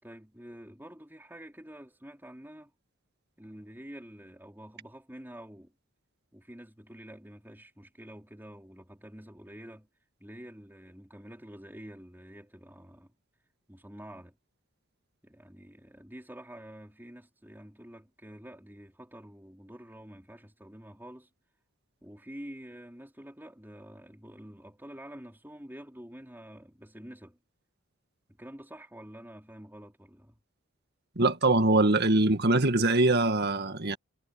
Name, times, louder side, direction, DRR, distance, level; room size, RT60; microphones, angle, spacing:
voice 1, 0.0-2.7 3.4-5.7 6.3-9.9 10.2-13.1 13.7-14.3 15.2-21.3 22.0-27.4 28.4-30.4, equal, 10° right, 4.5 m, -48 dB
voice 2, 31.2-34.0, right 2 dB, 50° right, 1.8 m, -23 dB
head